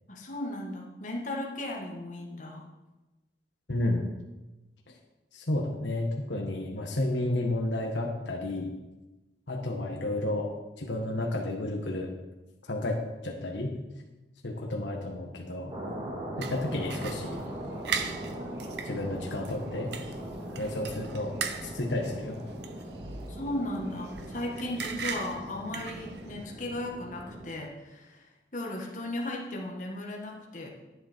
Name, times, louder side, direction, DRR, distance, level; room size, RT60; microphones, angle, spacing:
voice 1, 0.1-2.7 23.3-30.7, left 1 dB, 45° left, -1 dB, 1.8 m, -36 dB
voice 2, 3.7-4.1 5.3-8.7 9.5-10.5 10.8-12.1 12.6-13.8 14.4-15.7 16.4-17.5 18.8-19.9 20.6-22.4, left 1 dB, 80° left, 1 dB, 1.4 m, -31 dB
sound 1, 15.7-27.5, right 1 dB, 25° right, 2.1 m, -40 dB
sound 2, 16.4-26.5, right 6 dB, 65° right, 0.8 m, -40 dB
10.5 x 10.0 x 4.5 m, 1.1 s
head